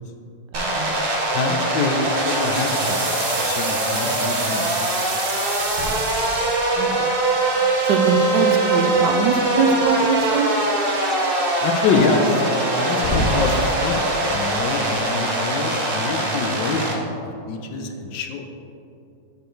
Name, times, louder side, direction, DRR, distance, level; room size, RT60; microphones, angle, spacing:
sound 1, 0.5-16.9, right 2 dB, 40° right, 0.9 m, -22 dB
voice 1, 0.5-1.0 6.8-7.0 7.9-10.5, right 5 dB, 75° right, 6 dB, 1.2 m, -22 dB
voice 2, 1.3-2.0 2.2-5.0 11.6-17.0 17.2-18.6, left 4 dB, 80° left, 4 dB, 1.4 m, -25 dB
sound 2, 5.5-6.9 8.7-10.2 10.9-11.0 11.7-11.8 12.9-13.7, left 1 dB, 40° left, 1.0 m, -30 dB
6.8 x 5.2 x 4.5 m, 2.6 s
omnidirectional pair, 2.0 m